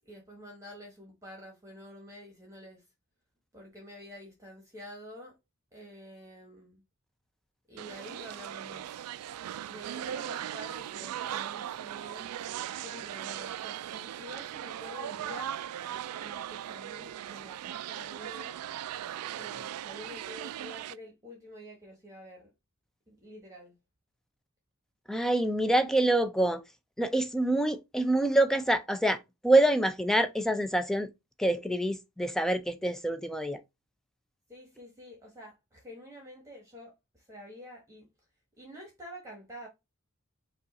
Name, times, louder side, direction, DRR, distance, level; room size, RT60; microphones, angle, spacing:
voice 1, 0.0-2.8 3.5-5.4 5.7-6.8 7.7-9.0 9.6-12.3 12.8-15.6 16.2-18.6 19.3-22.5 23.1-23.8 34.5-38.1 38.6-39.7, equal, 15° right, 1.2 m, -48 dB
sound 1, 7.8-20.9, right 11 dB, 90° right, 0.3 m, -38 dB
voice 2, 25.1-26.6 27.0-31.1 31.4-33.6, right 1 dB, ahead, 0.4 m, -26 dB
5.4 x 2.4 x 4.0 m
head